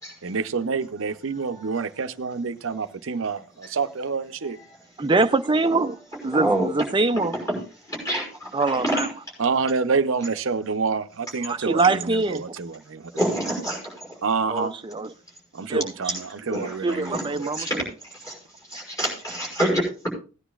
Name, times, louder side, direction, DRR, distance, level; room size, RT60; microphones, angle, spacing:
voice 1, 0.2-4.6 9.4-13.1 14.2-14.8 15.5-17.5, right 4 dB, 70° right, 0.7 m, -27 dB
voice 2, 5.0-6.0 6.2-7.3 8.5-9.1 11.4-12.5 14.5-15.1 15.7-16.2 16.8-17.9, right 3 dB, 25° right, 0.5 m, -23 dB
voice 3, 6.3-6.7 7.5-7.6 7.9-8.5 8.8-9.1 13.2-13.9 16.5-16.8 17.0-17.2 17.5-17.8 18.2-18.3 18.7-20.1, right 1 dB, 15° left, 5.6 m, -26 dB
17.5 x 10.0 x 2.4 m
head